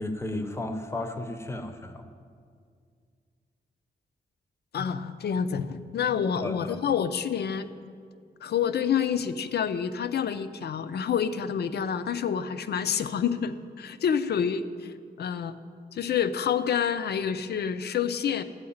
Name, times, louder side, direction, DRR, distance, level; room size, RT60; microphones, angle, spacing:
voice 1, 0.0-2.1 6.3-6.8, left 1 dB, 15° left, 7 dB, 0.7 m, -34 dB
voice 2, 4.7-7.7 8.4-15.5 15.9-18.4, left 7 dB, 70° left, 12 dB, 0.6 m, -28 dB
14.0 x 4.8 x 8.6 m, 2.1 s
wide cardioid pair, 180°, 18 cm